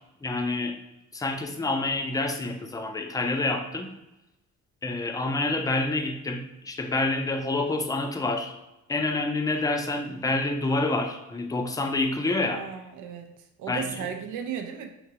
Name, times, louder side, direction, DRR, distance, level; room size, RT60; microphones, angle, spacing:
voice 1, 0.2-0.8 1.1-3.9 4.8-8.5 8.9-12.6 13.7-14.1, left 2 dB, 10° left, 5 dB, 0.4 m, -27 dB
voice 2, 12.4-14.9, right 8 dB, 80° right, 5 dB, 0.5 m, -36 dB
3.6 x 2.8 x 2.8 m, 0.92 s
cardioid pair, 90°, 30 cm